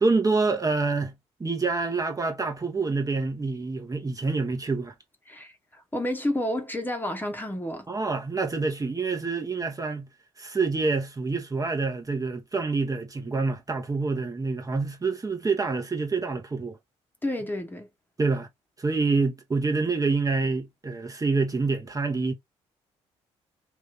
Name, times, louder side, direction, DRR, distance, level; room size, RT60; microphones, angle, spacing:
voice 1, 0.0-1.1 1.4-4.9 7.9-10.1 10.4-16.8 18.2-18.5 18.8-22.3, right 3 dB, 25° right, 1.0 m, -27 dB
voice 2, 5.3-7.9 17.2-17.9, left 1 dB, 15° left, 1.0 m, -30 dB
2.9 x 2.6 x 3.5 m
hypercardioid pair, 55°, 14 cm